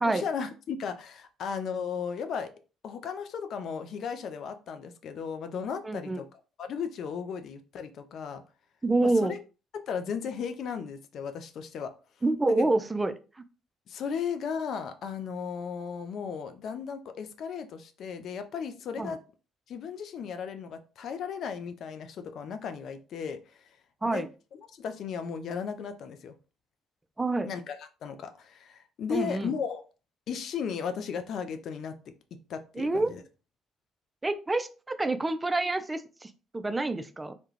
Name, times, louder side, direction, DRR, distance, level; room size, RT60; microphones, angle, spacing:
voice 1, 0.0-2.5 2.8-6.3 6.6-8.4 9.0-9.4 9.7-11.9 12.5-12.7 13.9-19.2 19.7-23.7 24.0-24.2 24.7-26.3 27.4-29.8 30.3-33.2, left 6 dB, 60° left, 9 dB, 0.3 m, -35 dB
voice 2, 5.8-6.2 8.8-9.3 12.2-13.1 19.0-19.1 24.0-24.3 27.2-27.5 29.1-29.5 32.8-33.1 34.2-37.3, right 2 dB, 20° right, 10 dB, 0.3 m, -27 dB
2.3 x 2.1 x 3.0 m, 0.34 s
hypercardioid pair, 55°, 0 cm